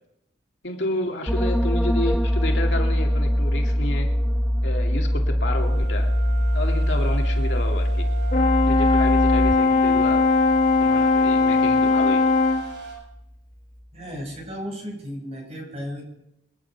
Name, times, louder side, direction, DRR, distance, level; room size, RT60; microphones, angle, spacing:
voice 1, 0.6-4.1 4.6-6.1 6.5-8.1 8.7-10.3 10.8-12.3, left 1 dB, 70° left, 2 dB, 2.4 m, -30 dB
sound 1, 1.3-12.6 12.9-13.2, equal, 5° left, 0.6 m, -23 dB
sound 2, 5.5-12.9, right 4 dB, 70° right, 7.8 m, -38 dB
Brass instrument, 8.3-12.7, left 3 dB, 45° left, 1.4 m, -19 dB
voice 2, 13.9-16.0, equal, 35° right, 0 dB, 6.1 m, -34 dB
26.5 x 9.9 x 4.7 m, 0.84 s
head